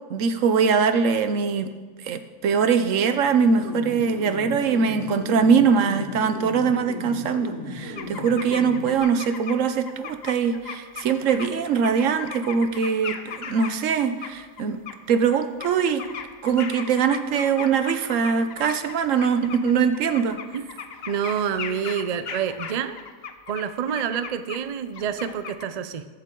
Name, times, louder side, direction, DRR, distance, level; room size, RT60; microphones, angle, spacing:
voice 1, 0.1-1.7 2.0-14.8 15.1-16.0 16.4-20.4, right 6 dB, 65° right, 9 dB, 1.1 m, -22 dB
sound 1, 3.5-9.0, left 2 dB, 80° left, 2.1 m, -36 dB
sound 2, 8.0-9.6 9.9-13.9 14.2-14.9 15.3-24.6 24.9-25.7, left 6 dB, 50° left, 0.9 m, -37 dB
voice 2, 21.1-23.0 23.5-26.1, right 8 dB, 85° right, 11 dB, 0.3 m, -27 dB
20.5 x 7.5 x 3.8 m, 1.4 s
omnidirectional pair, 1.5 m